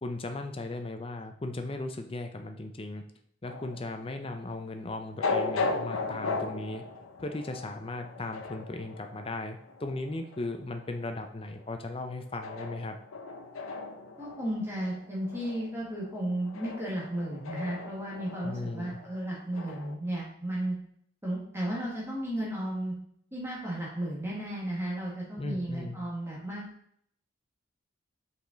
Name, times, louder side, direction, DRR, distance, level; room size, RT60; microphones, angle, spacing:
voice 1, 0.0-3.0 3.4-6.8 7.2-13.0 18.4-19.0 25.4-26.0, left 2 dB, 25° left, 6 dB, 0.6 m, -37 dB
sound 1, 3.4-20.0, left 3 dB, 85° left, 0.7 m, -37 dB
voice 2, 14.2-20.7 21.2-22.9 23.3-26.6, right 1 dB, 10° right, -5 dB, 1.6 m, -34 dB
5.6 x 5.0 x 3.9 m, 0.67 s
head